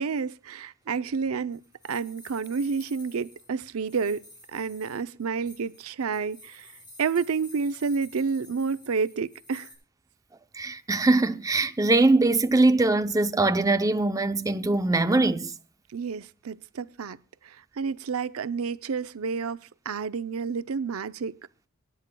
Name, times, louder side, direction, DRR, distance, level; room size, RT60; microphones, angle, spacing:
voice 1, 0.0-4.2 4.5-6.7 7.0-9.7 15.9-17.2 17.4-21.4, right 5 dB, 90° right, 0.5 m, -30 dB
sound 1, 0.9-9.8, left 1 dB, 20° left, 6.6 m, -52 dB
voice 2, 10.5-15.5, right 2 dB, 15° right, 0.5 m, -22 dB
25.0 x 10.5 x 2.2 m
head